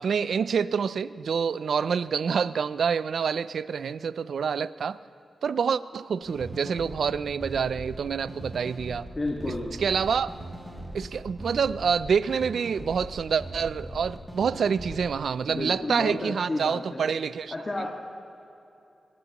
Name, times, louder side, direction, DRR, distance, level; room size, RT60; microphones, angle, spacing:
voice 1, 0.0-5.0 5.4-9.1 9.8-10.3 10.9-17.5 17.8-17.9, right 6 dB, 80° right, 16 dB, 0.3 m, -27 dB
sound 1, 6.2-15.1, right 1 dB, 10° right, 2.5 m, -40 dB
voice 2, 9.2-9.7 15.5-17.1 17.5-17.9, left 2 dB, 35° left, -1 dB, 1.8 m, -31 dB
22.5 x 19.5 x 3.0 m, 2.8 s
cardioid pair, 70°, 0 cm